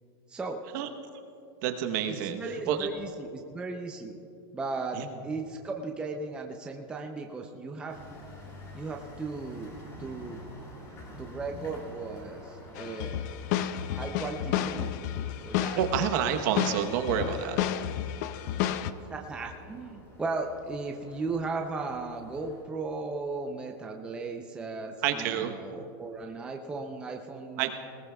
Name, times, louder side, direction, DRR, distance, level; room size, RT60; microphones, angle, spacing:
voice 1, 0.3-0.6 2.2-4.2 4.5-8.0 8.7-9.7 10.0-10.4 11.2-13.2 13.9-14.9 15.4-15.8 19.1-27.7, right 3 dB, 5° right, 2 dB, 0.5 m, -36 dB
voice 2, 1.6-2.4 2.7-2.9 4.9-5.1 15.8-17.6 25.0-25.5 27.6-27.7, right 9 dB, 45° right, 6 dB, 1.0 m, -28 dB
sound 1, 7.9-22.6, left 1 dB, 25° left, 2.7 m, -48 dB
sound 2, 12.8-18.9, left 11 dB, 45° left, 0.5 m, -31 dB
19.5 x 18.5 x 2.3 m, 2.7 s
supercardioid pair, 165°, 13 cm